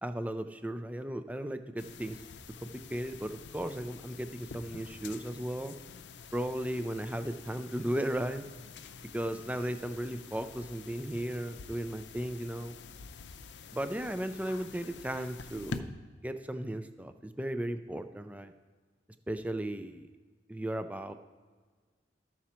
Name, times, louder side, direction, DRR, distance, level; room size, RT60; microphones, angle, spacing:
voice 1, 0.0-2.2 2.6-5.7 6.3-8.4 9.1-12.8 13.7-15.8 16.2-18.5 19.3-20.1 20.5-21.1, right 1 dB, 10° right, 9 dB, 0.4 m, -35 dB
sound 1, 1.8-15.8, left 5 dB, 80° left, 0.5 m, -47 dB
13.0 x 6.0 x 4.3 m, 1.5 s
head